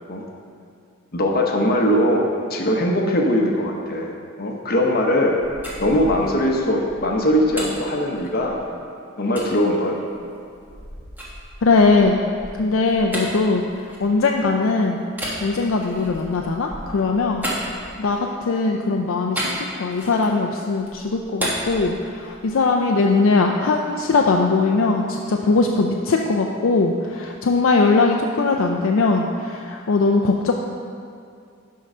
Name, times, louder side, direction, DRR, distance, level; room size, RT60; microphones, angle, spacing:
voice 1, 1.1-2.2 2.5-4.1 4.4-5.4 5.8-8.6 9.2-10.0, equal, 45° left, 1 dB, 1.0 m, -20 dB
sound 1, 5.4-8.7 9.4-9.5 10.1-14.5 15.1-18.3 19.4-20.4 20.8-22.6, equal, 10° right, 1.4 m, -33 dB
voice 2, 11.6-12.2 12.6-13.6 14.0-15.0 15.4-17.4 18.0-18.2 18.5-30.5, left 3 dB, 70° left, 1 dB, 0.5 m, -20 dB
11.0 x 3.8 x 5.5 m, 2.4 s
head